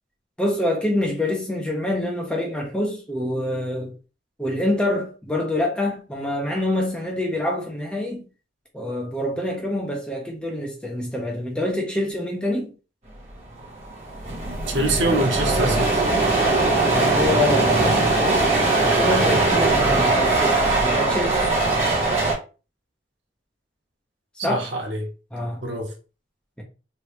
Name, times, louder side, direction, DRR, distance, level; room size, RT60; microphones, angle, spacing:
voice 1, 0.4-3.9 4.4-8.2 8.7-12.7 16.9-18.1 18.8-21.4 24.4-24.6 25.3-25.6, left 1 dB, 5° left, 0.6 m, -26 dB
sound 1, 13.6-13.7 13.8-22.3, right 2 dB, 35° right, 1.1 m, -20 dB
voice 2, 14.7-16.0 24.4-25.1 25.6-25.9, right 1 dB, 75° right, 1.0 m, -24 dB
3.1 x 2.7 x 3.1 m
head